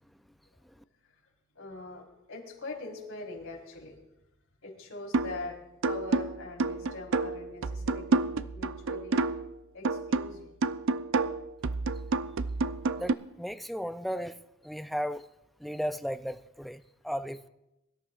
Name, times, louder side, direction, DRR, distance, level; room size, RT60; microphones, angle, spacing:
voice 1, 1.5-4.0 4.6-5.6 5.9-9.2 9.7-10.6, left 2 dB, 80° left, -1 dB, 4.2 m, -42 dB
sound 1, 5.1-5.5 5.8-9.5 9.8-13.1, right 3 dB, 65° right, 0.5 m, -29 dB
voice 2, 13.0-15.2 15.6-17.4, equal, ahead, 10 dB, 0.4 m, -35 dB
23.0 x 13.0 x 2.5 m, 0.93 s
head